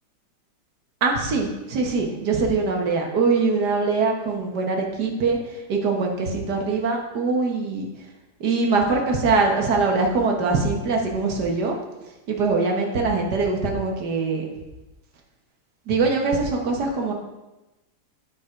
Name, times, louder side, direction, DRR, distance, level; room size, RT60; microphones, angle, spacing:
voice 1, 1.0-5.4 5.7-7.9 8.4-11.8 12.3-14.5 15.9-17.1, right 4 dB, 55° right, 1 dB, 1.8 m, -22 dB
9.3 x 6.1 x 5.1 m, 1.0 s
omnidirectional pair, 2.3 m